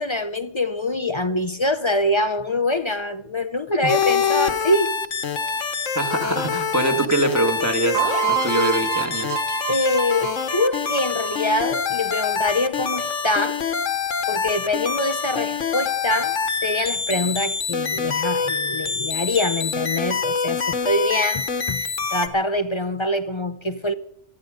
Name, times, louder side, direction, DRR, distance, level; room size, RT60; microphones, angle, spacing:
voice 1, 0.0-5.0 6.4-6.5 6.8-6.9 9.7-13.6 14.3-16.4 16.6-23.9, left 1 dB, 40° left, 0.4 m, -24 dB
sound 1, 3.9-22.3, left 6 dB, 70° left, 1.5 m, -25 dB
voice 2, 6.0-9.4, right 1 dB, 10° right, 1.9 m, -23 dB
sound 2, 7.9-11.7, right 9 dB, 90° right, 3.2 m, -27 dB
27.0 x 9.7 x 5.2 m
omnidirectional pair, 1.4 m